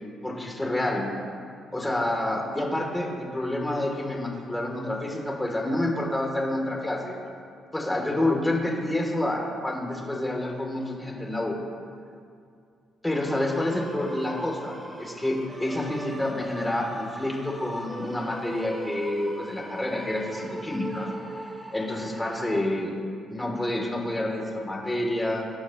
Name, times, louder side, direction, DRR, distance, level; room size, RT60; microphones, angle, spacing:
voice 1, 0.2-1.1 1.7-7.2 7.7-11.6 13.0-21.1 21.7-22.9 23.3-25.5, left 1 dB, 10° left, -1 dB, 3.3 m, -28 dB
sound 1, 13.1-22.6, right 1 dB, 15° right, 1.9 m, -40 dB
25.5 x 11.5 x 3.2 m, 2.3 s
cardioid pair, 90°, 0 cm